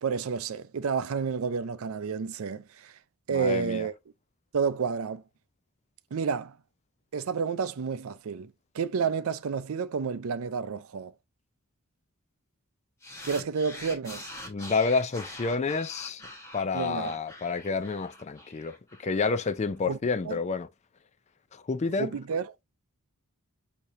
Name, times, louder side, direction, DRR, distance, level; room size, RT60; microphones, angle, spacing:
voice 1, 0.0-2.9 3.3-3.9 4.5-5.2 6.1-6.5 7.1-11.1 13.2-14.3 16.7-17.2 19.9-20.0 20.2-20.4 22.0-22.5, right 5 dB, 65° right, 0.4 m, -30 dB
voice 2, 3.3-3.9 14.5-16.2 16.5-18.7 19.0-20.7 21.7-22.1, left 4 dB, 30° left, 0.4 m, -29 dB
sound 1, 13.0-19.5, left 1 dB, 15° left, 1.2 m, -44 dB
6.5 x 2.9 x 2.6 m
head